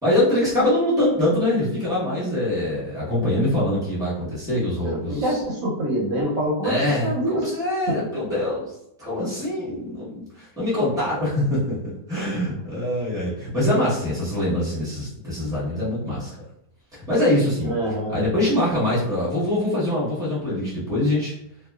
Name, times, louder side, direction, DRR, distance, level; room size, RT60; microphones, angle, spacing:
voice 1, 0.0-5.4 6.6-11.8 12.1-16.3 16.9-17.7 18.1-21.3, left 1 dB, 5° right, -9 dB, 0.4 m, -24 dB
voice 2, 4.8-6.7 7.0-7.4 7.9-8.0 17.6-18.2, right 1 dB, 65° right, -4 dB, 0.9 m, -25 dB
2.8 x 2.0 x 2.2 m, 0.80 s
omnidirectional pair, 1.9 m